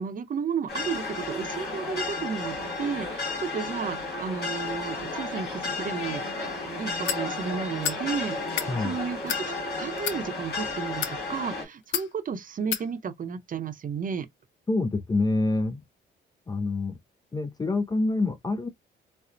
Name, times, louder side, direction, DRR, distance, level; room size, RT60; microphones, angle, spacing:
voice 1, 0.0-6.3 6.8-14.3, right 6 dB, 45° right, 0.7 m, -33 dB
sound 1, 0.7-11.6, left 3 dB, 55° left, 2.3 m, -33 dB
sound 2, 7.0-7.2 7.8-8.0 8.4-8.7 9.3-9.4 10.0-10.2 10.9-11.2 11.9-12.1 12.7-12.8, left 10 dB, 75° left, 0.4 m, -29 dB
voice 2, 14.7-15.8 16.5-16.9 17.3-18.7, left 2 dB, 20° left, 0.4 m, -26 dB
4.2 x 2.0 x 2.6 m
cardioid pair, 90°, 20 cm